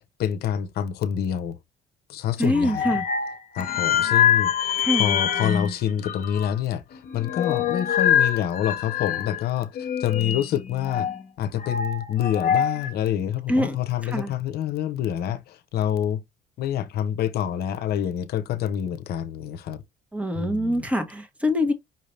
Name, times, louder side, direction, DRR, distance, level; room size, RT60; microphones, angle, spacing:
voice 1, 0.0-1.6 2.1-3.0 3.5-11.1 11.4-16.2 16.6-19.8 20.3-20.9, left 10 dB, 70° left, 0.8 m, -27 dB
voice 2, 2.4-3.0 4.8-5.2 13.5-13.7 14.0-14.3 20.1-21.7, left 1 dB, 10° right, 1.4 m, -24 dB
sound 1, 2.5-5.7 6.0-6.5 6.9-9.5 9.7-11.2 11.6-12.9, left 9 dB, 55° left, 1.2 m, -24 dB
5.8 x 2.7 x 3.3 m
cardioid pair, 110°, 17 cm